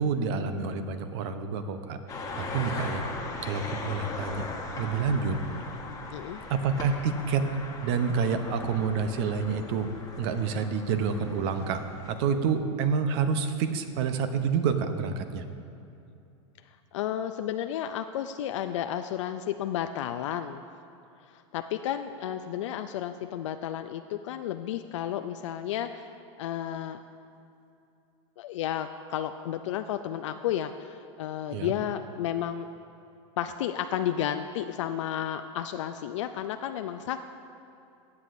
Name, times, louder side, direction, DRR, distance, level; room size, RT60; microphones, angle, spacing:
voice 1, 0.0-2.0 2.3-3.0 3.4-4.4 4.8-5.4 6.5-7.5 7.8-9.9 10.2-15.4 31.5-31.7, right 5 dB, 60° right, 9 dB, 0.8 m, -28 dB
sound 1, 2.1-12.1, left 3 dB, 20° left, 1.3 m, -39 dB
voice 2, 16.9-20.6 21.3-26.1 26.4-27.0 28.4-32.7 33.4-37.2, left 10 dB, 75° left, 8 dB, 0.4 m, -32 dB
15.0 x 8.3 x 2.6 m, 2.6 s
hypercardioid pair, 115°, 16 cm